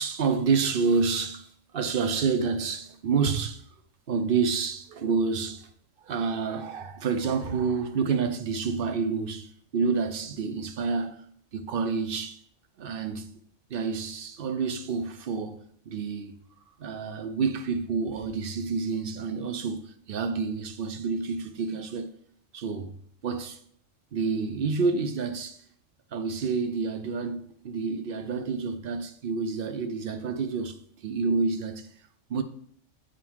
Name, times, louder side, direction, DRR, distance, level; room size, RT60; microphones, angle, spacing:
voice 1, 0.0-3.6 4.1-5.7 6.0-11.2 11.5-12.4 12.8-13.4 13.7-16.4 16.8-22.1 22.5-22.9 23.2-23.6 24.1-25.6 26.1-31.9 32.3-32.4, right 5 dB, 55° right, 0.7 m, -28 dB
8.5 x 3.7 x 4.6 m
omnidirectional pair, 1.3 m